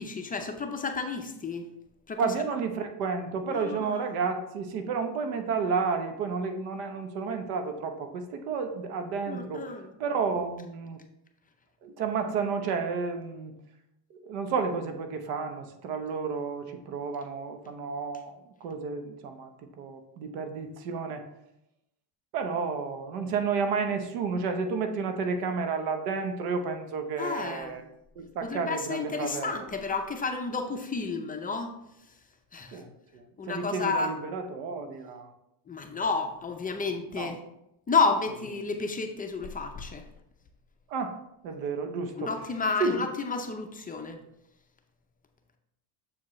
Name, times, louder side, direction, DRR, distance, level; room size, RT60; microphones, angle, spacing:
voice 1, 0.0-1.7 2.1-2.3 3.5-4.0 9.3-9.9 27.2-27.8 28.4-31.7 32.5-32.8 33.4-34.1 35.7-37.4 37.9-40.0 42.2-44.2, left 4 dB, 20° left, 4 dB, 0.6 m, -31 dB
voice 2, 2.2-9.7 10.0-11.0 11.8-13.5 14.1-21.3 22.3-27.8 28.2-29.7 32.7-35.3 37.1-37.4 40.9-41.2 41.4-42.3 42.8-43.1, right 5 dB, 90° right, 7 dB, 1.0 m, -31 dB
7.2 x 4.8 x 3.1 m, 0.84 s
cardioid pair, 120°, 46 cm